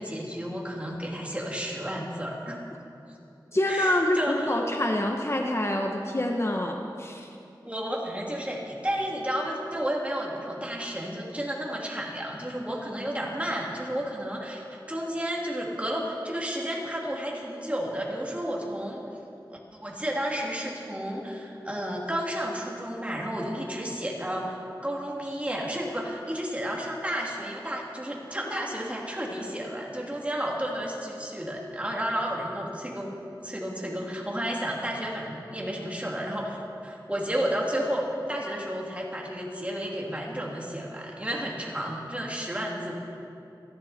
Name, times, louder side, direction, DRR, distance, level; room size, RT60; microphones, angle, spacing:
voice 1, 0.0-2.6 3.7-4.6 7.6-19.1 19.5-33.1 33.4-43.0, equal, 15° right, -2 dB, 3.0 m, -32 dB
voice 2, 3.5-7.3, left 1 dB, 35° left, 2 dB, 1.2 m, -26 dB
27.5 x 11.0 x 4.4 m, 2.7 s
wide cardioid pair, 65°, 8 cm